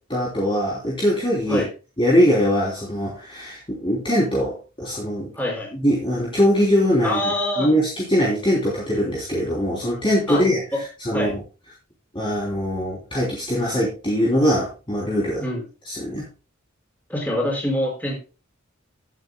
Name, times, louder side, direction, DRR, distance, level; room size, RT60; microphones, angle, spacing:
voice 1, 0.1-1.6 2.0-5.3 5.7-7.2 7.6-11.4 12.1-15.4 15.8-16.3, equal, 25° left, -4 dB, 3.1 m, -22 dB
voice 2, 5.3-5.7 7.0-7.7 10.3-10.4 11.1-11.3 15.4-15.6 17.1-18.2, left 1 dB, 10° left, -1 dB, 5.2 m, -25 dB
16.5 x 8.7 x 2.3 m, 0.32 s
head